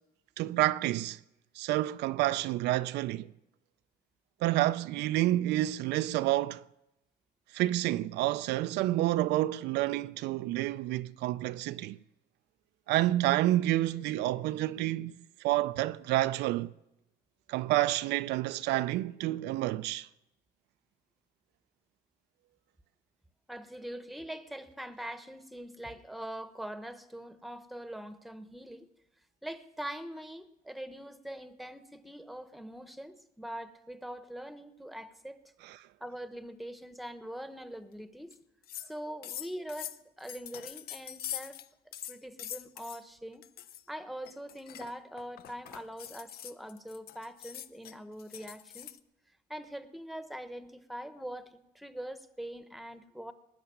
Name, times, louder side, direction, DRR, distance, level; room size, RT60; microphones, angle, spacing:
voice 1, 0.4-1.2 1.6-3.3 4.4-6.6 7.5-12.0 12.9-16.7 17.5-20.1 35.6-35.8, right 15 dB, 85° right, 0.5 m, -29 dB
voice 2, 23.5-28.9 29.4-35.4 36.0-38.3 38.8-41.6 42.1-43.4 43.9-48.9 49.5-53.3, right 1 dB, ahead, 1.0 m, -43 dB
sound 1, 38.3-38.4 38.6-38.9 39.2-41.7 41.9-43.0 43.4-43.8 44.3-49.0, left 11 dB, 65° left, 0.7 m, -43 dB
19.5 x 6.6 x 9.9 m
cardioid pair, 110°, 17 cm